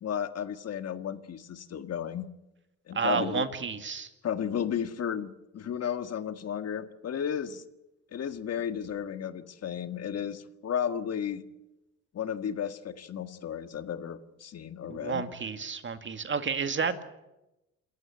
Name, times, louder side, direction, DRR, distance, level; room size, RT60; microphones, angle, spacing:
voice 1, 0.0-2.2 2.9-3.4 4.2-7.6 8.1-11.4 12.1-15.2, left 8 dB, 55° left, 10 dB, 1.7 m, -33 dB
voice 2, 2.9-4.1 14.9-17.0, right 5 dB, 40° right, 9 dB, 2.1 m, -31 dB
27.5 x 14.5 x 9.0 m, 0.95 s
cardioid pair, 90°, 30 cm